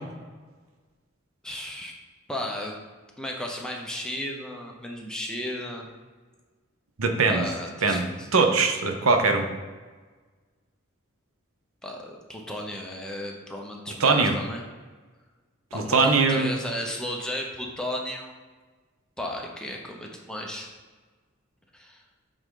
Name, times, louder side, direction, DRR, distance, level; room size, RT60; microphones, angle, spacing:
voice 1, 1.4-1.9 2.3-2.8 3.2-5.9 7.3-8.3 11.8-14.7 15.7-18.3 19.2-20.7 21.7-22.0, left 1 dB, 5° left, 0 dB, 0.8 m, -34 dB
voice 2, 7.0-7.5 7.8-9.5 14.0-14.3 15.7-16.5, right 4 dB, 85° right, 5 dB, 0.8 m, -21 dB
7.9 x 3.7 x 3.8 m, 1.4 s
head